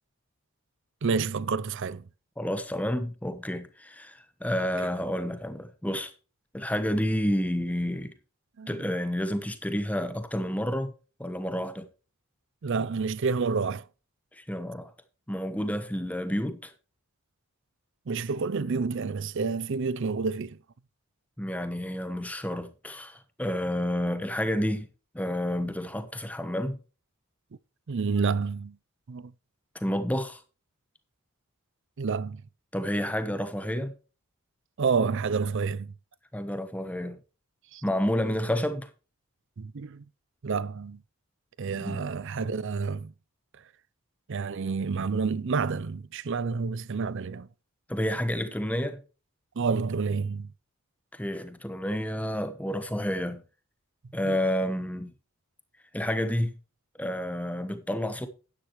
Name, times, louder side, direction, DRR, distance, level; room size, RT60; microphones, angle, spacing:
voice 1, 1.0-2.0 8.6-8.9 12.6-13.9 18.1-20.6 27.9-28.8 29.1-29.3 32.0-32.4 34.8-35.9 37.7-37.8 39.6-40.0 40.4-41.0 41.6-43.1 44.3-47.5 49.6-50.5 54.2-54.4, right 5 dB, 55° right, 0.5 m, -29 dB
voice 2, 2.4-6.1 6.5-8.1 8.7-10.9 11.2-11.9 14.4-14.9 15.3-16.7 21.4-24.9 25.1-26.8 29.7-30.4 32.7-33.9 36.3-37.2 37.8-38.9 41.8-42.0 47.9-49.0 51.1-53.4 54.1-55.1 55.9-56.5 57.0-58.3, equal, 5° left, 1.0 m, -30 dB
11.5 x 9.9 x 3.1 m
head